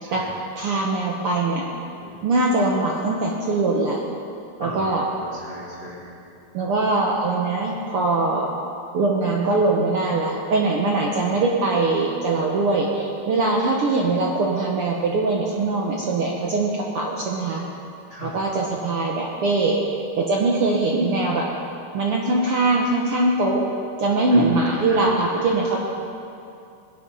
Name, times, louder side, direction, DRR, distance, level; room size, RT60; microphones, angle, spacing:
voice 1, 0.0-0.3 2.0-2.2 4.6-6.2 18.1-18.3 24.3-25.5, equal, 20° left, -5 dB, 1.8 m, -35 dB
voice 2, 0.6-1.6 2.2-4.0 4.6-5.0 6.5-8.5 8.9-17.6 18.2-21.5 21.9-23.6 24.0-25.8, right 2 dB, 60° right, -2 dB, 1.6 m, -22 dB
21.0 x 8.4 x 5.5 m, 2.6 s
omnidirectional pair, 3.5 m